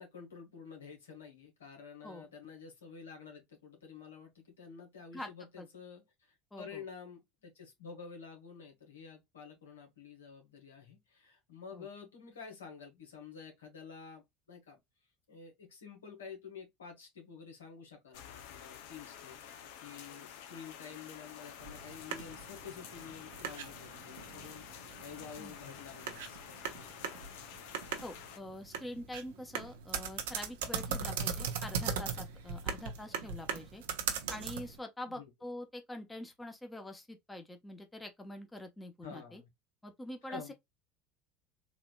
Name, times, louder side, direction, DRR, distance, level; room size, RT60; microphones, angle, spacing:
voice 1, 0.0-14.8 15.3-24.7 25.0-27.1 33.1-33.2 35.1-35.3 39.0-39.5 40.3-40.5, left 6 dB, 85° left, 1.7 m, -50 dB
voice 2, 6.5-6.8 11.7-11.9 25.4-25.5 28.0-33.8 34.3-39.4 39.8-40.5, left 1 dB, 15° left, 1.0 m, -45 dB
sound 1, 18.1-28.4, left 9 dB, 70° left, 0.7 m, -50 dB
sound 2, 21.6-34.8, right 7 dB, 75° right, 0.8 m, -40 dB
4.0 x 2.8 x 2.3 m
hypercardioid pair, 75°, 0 cm